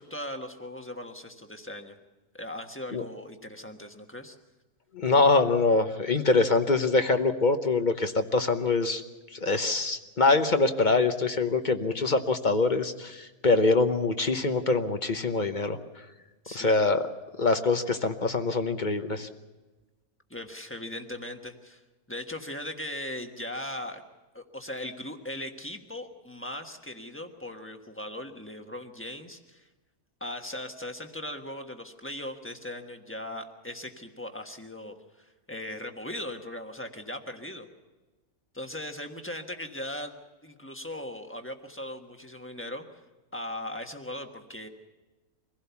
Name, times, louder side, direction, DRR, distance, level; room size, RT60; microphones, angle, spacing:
voice 1, 0.0-2.0 2.3-4.4 16.4-16.8 20.3-21.8 22.1-24.0 24.3-29.7 30.2-37.7 38.5-42.8 43.3-44.7, left 1 dB, 10° left, 4 dB, 1.2 m, -39 dB
voice 2, 4.9-9.0 9.3-15.8 16.5-17.0 17.4-19.3, left 3 dB, 35° left, 8 dB, 0.9 m, -24 dB
24.5 x 16.0 x 7.0 m, 1.2 s
omnidirectional pair, 1.5 m